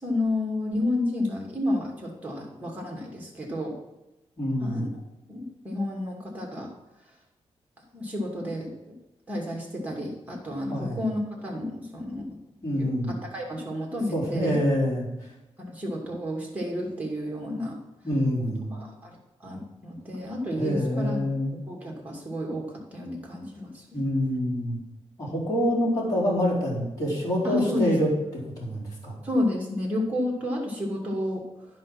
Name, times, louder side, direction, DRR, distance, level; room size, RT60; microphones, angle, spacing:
voice 1, 0.0-3.7 4.6-4.9 5.3-6.7 7.9-8.9 9.3-12.4 12.8-14.6 15.6-17.8 18.7-21.4 21.7-23.9 27.4-28.0 29.2-31.4, left 1 dB, 15° right, -1 dB, 2.4 m, -31 dB
voice 2, 4.4-4.9 10.7-11.0 12.6-13.1 14.1-15.1 18.0-18.7 20.6-21.6 23.9-24.8 25.2-29.2, equal, 35° left, -5 dB, 4.0 m, -26 dB
11.0 x 5.4 x 6.0 m, 0.96 s
wide cardioid pair, 150°, 11 cm